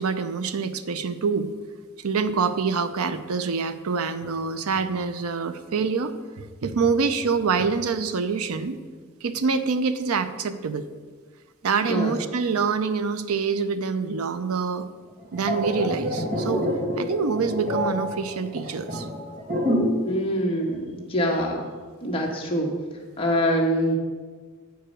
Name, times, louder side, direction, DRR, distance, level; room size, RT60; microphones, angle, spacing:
voice 1, 0.0-1.5 2.0-8.8 9.2-10.9 11.6-14.9 15.3-16.7 17.0-19.1, right 5 dB, 85° right, 11 dB, 0.6 m, -26 dB
sound 1, 15.2-20.1 20.4-20.6, equal, 40° right, 2.2 m, -27 dB
voice 2, 20.1-21.6 22.0-22.8 23.2-24.0, equal, 25° left, 0 dB, 1.3 m, -24 dB
9.0 x 4.7 x 6.3 m, 1.5 s
head